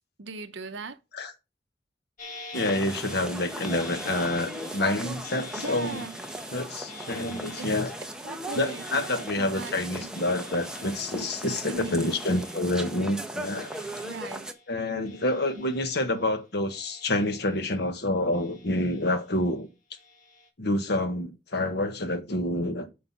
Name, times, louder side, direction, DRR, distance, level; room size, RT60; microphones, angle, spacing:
voice 1, 0.0-1.0 5.6-6.2 7.6-7.7 8.2-8.9 9.4-10.1 11.7-12.0 14.0-14.5 15.6-15.7, right 3 dB, 70° right, 0.8 m, -39 dB
sound 1, 2.2-14.8 15.1-16.3 16.7-17.9 18.3-19.4 20.0-20.5, left 3 dB, 45° left, 1.8 m, -47 dB
voice 2, 2.5-6.0 6.5-7.9 8.5-13.7 14.7-19.7 20.6-22.9, left 1 dB, 60° left, 1.3 m, -28 dB
sound 2, 2.5-14.5, right 1 dB, 5° right, 0.9 m, -38 dB
9.7 x 4.0 x 5.6 m
head